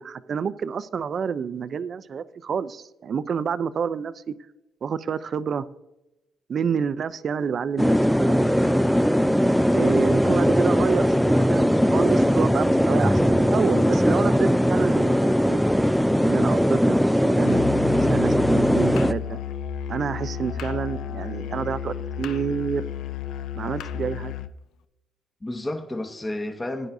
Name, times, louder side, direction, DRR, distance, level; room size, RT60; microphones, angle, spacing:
voice 1, 0.0-4.3 4.8-5.7 6.5-8.5 9.7-15.6 16.2-17.6 18.1-19.4 19.9-22.8 23.6-24.3, right 6 dB, 50° right, 0.5 m, -28 dB
sound 1, 7.8-19.1, equal, ahead, 0.4 m, -20 dB
voice 2, 10.5-11.1 25.4-26.9, left 1 dB, 20° left, 1.1 m, -32 dB
Musical instrument, 17.4-24.6, left 8 dB, 80° left, 0.4 m, -32 dB
16.0 x 9.9 x 2.6 m
cardioid pair, 90°, 0 cm